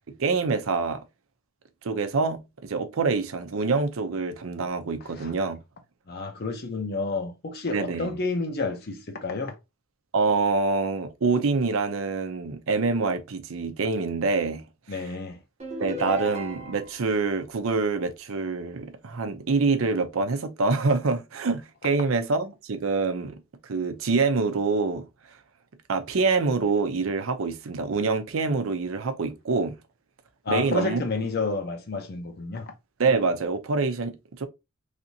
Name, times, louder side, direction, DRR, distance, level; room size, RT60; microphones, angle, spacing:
voice 1, 0.2-1.0 1.8-5.6 7.7-8.2 10.1-14.6 14.9-15.1 15.8-23.4 23.7-25.0 25.9-29.7 30.5-31.0 33.0-34.5, right 4 dB, 75° right, 0.6 m, -26 dB
voice 2, 6.1-9.6 14.9-15.4 30.4-32.7, left 3 dB, 50° left, 0.6 m, -30 dB
sound 1, 15.6-17.1, equal, 30° right, 1.0 m, -34 dB
3.3 x 2.6 x 2.7 m
head